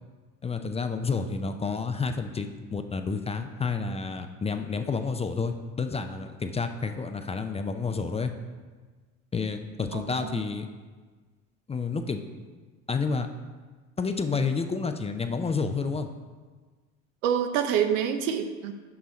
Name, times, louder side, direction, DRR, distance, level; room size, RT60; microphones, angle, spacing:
voice 1, 0.4-8.3 9.3-10.7 11.7-12.2 12.9-13.3 14.0-16.1, left 4 dB, 15° left, 7 dB, 0.4 m, -30 dB
voice 2, 9.9-10.4 17.2-18.7, right 8 dB, 85° right, 7 dB, 0.7 m, -27 dB
6.3 x 5.6 x 4.2 m, 1.4 s
hypercardioid pair, 80°, 39 cm